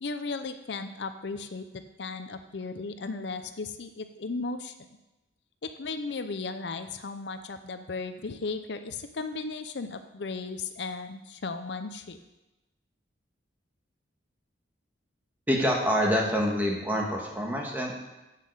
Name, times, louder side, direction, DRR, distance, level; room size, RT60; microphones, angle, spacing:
voice 1, 0.0-4.7 5.6-12.2, left 3 dB, 65° left, 9 dB, 0.6 m, -36 dB
voice 2, 15.5-17.9, equal, 10° right, -1 dB, 1.6 m, -26 dB
7.5 x 7.4 x 7.9 m, 1.0 s
head